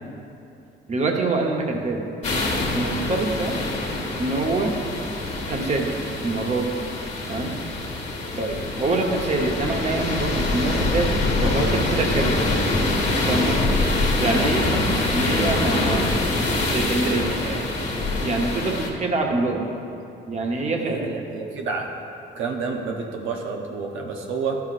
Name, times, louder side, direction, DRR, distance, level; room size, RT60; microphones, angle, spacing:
voice 1, 0.9-2.0 2.7-3.6 4.2-4.7 5.5-5.9 6.2-6.7 7.3-7.5 8.4-11.1 11.4-12.7 13.2-13.9 14.2-16.2 16.7-17.7 18.2-19.6 20.3-21.1, right 2 dB, 35° right, 1 dB, 1.0 m, -25 dB
sound 1, 2.2-18.9, left 2 dB, 35° left, 1.3 m, -24 dB
voice 2, 20.8-21.9 22.3-24.6, right 4 dB, 85° right, 1 dB, 0.8 m, -29 dB
12.5 x 5.7 x 2.5 m, 2.8 s
cardioid pair, 90°, 20 cm